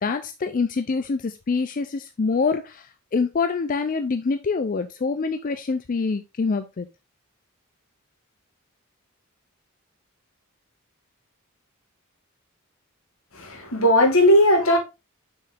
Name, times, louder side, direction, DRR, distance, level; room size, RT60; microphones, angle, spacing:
voice 1, 0.0-6.9, left 4 dB, 40° left, 0.4 m, -25 dB
voice 2, 13.3-14.8, left 1 dB, 80° left, 2.3 m, -17 dB
6.3 x 4.7 x 3.4 m
head